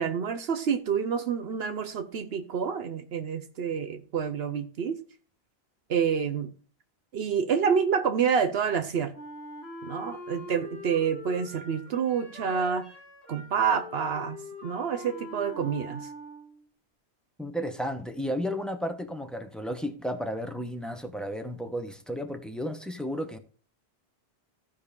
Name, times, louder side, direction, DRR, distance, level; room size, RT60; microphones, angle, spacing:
voice 1, 0.0-5.0 5.9-6.5 7.1-9.1 9.8-12.9 13.3-16.1, right 7 dB, 75° right, 1.0 m, -28 dB
Wind instrument woodwind instrument, 9.1-16.7, left 1 dB, 75° left, 2.0 m, -43 dB
voice 2, 17.4-23.4, equal, ahead, 0.9 m, -33 dB
15.5 x 5.1 x 3.6 m
omnidirectional pair, 1.1 m